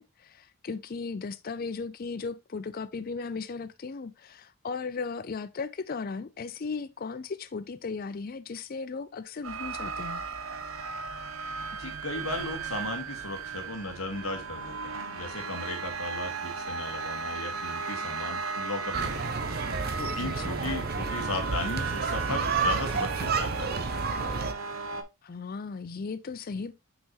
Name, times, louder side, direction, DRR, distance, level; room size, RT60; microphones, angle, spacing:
voice 1, 0.0-10.2 20.2-20.6 25.2-26.7, left 4 dB, 40° left, 0.4 m, -36 dB
sound 1, 9.4-25.0, right 4 dB, 70° right, 0.9 m, -36 dB
voice 2, 11.7-19.5 20.0-23.7, left 2 dB, 75° left, 1.8 m, -36 dB
sound 2, 18.9-24.5, right 4 dB, 45° right, 0.6 m, -30 dB
5.8 x 5.5 x 3.0 m
head